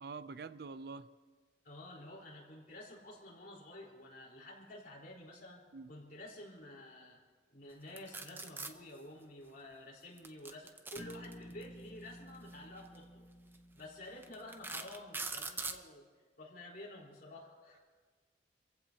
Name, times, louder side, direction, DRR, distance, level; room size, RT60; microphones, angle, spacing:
voice 1, 0.0-1.1 5.7-5.9, right 4 dB, 60° right, 14 dB, 0.5 m, -45 dB
voice 2, 1.6-5.6 5.9-7.2 7.5-13.2 13.7-16.0 16.4-17.8, left 1 dB, 50° left, -3 dB, 4.2 m, -51 dB
sound 1, 8.0-8.7 10.2-11.6 12.8-13.0 13.5-13.6 14.2-15.8, right 3 dB, 10° right, 0.6 m, -41 dB
Bass guitar, 10.9-15.0, equal, 5° left, 4.2 m, -53 dB
27.5 x 15.5 x 2.9 m, 1.5 s
head